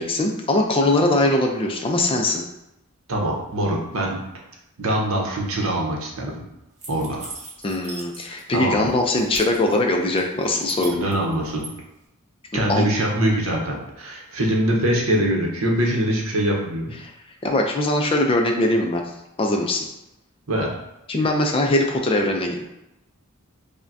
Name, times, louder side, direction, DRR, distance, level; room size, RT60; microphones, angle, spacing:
voice 1, 0.0-2.4 7.6-11.1 12.7-12.9 17.0-17.1 17.4-19.0 19.4-19.9 21.1-22.6, left 2 dB, 25° left, 2 dB, 0.3 m, -21 dB
voice 2, 3.1-4.2 4.8-6.4 6.9-7.3 8.5-8.9 10.9-11.7 12.5-16.9 20.5-20.7, right 1 dB, 65° right, -1 dB, 0.8 m, -23 dB
sound 1, 6.8-8.5 8.8-9.7 10.2-11.7, right 3 dB, 30° right, 0.8 m, -39 dB
5.7 x 2.2 x 2.6 m, 0.87 s
head